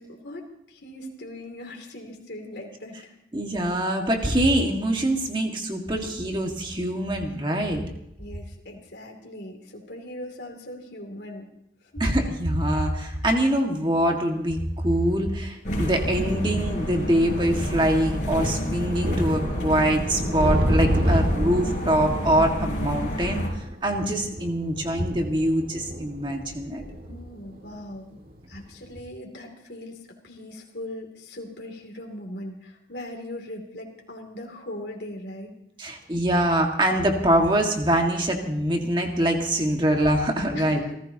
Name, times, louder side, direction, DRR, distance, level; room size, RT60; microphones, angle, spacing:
voice 1, 0.0-3.2 8.2-11.5 11.8-12.0 13.0-13.1 27.0-28.2 28.5-35.5 40.5-40.9, left 1 dB, 70° left, 1 dB, 2.9 m, -39 dB
voice 2, 3.3-7.8 12.0-23.4 23.8-26.8 35.8-40.8, right 1 dB, 25° right, 2 dB, 1.9 m, -24 dB
sound 1, 14.9-15.0 16.1-16.2 17.3-17.4 17.7-17.8 18.4-28.4 28.8-29.0, equal, 50° right, 2.2 m, -30 dB
sound 2, 15.6-23.5, equal, 45° left, 4.6 m, -29 dB
29.5 x 14.5 x 2.9 m, 0.80 s
head